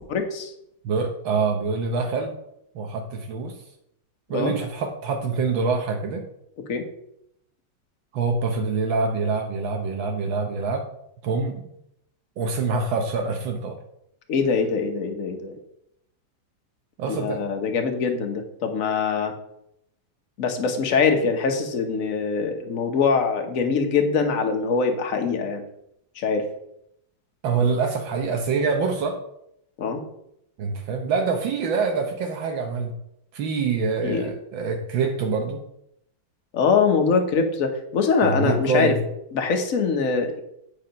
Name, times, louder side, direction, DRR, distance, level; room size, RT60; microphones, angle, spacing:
voice 1, 0.1-0.5 4.3-4.5 6.7-6.9 14.3-15.6 17.1-19.3 20.4-25.6 26.1-26.5 29.8-30.0 34.0-34.3 36.5-38.9 39.3-40.4, left 5 dB, 50° left, 4 dB, 1.3 m, -23 dB
voice 2, 0.8-2.4 2.7-3.5 4.3-6.2 8.1-10.9 11.2-11.7 12.4-13.8 17.0-17.4 27.4-29.2 30.6-32.9 33.3-35.6 38.2-39.0, right 4 dB, 80° right, 3 dB, 1.6 m, -25 dB
8.4 x 4.9 x 5.2 m, 0.78 s
omnidirectional pair, 2.1 m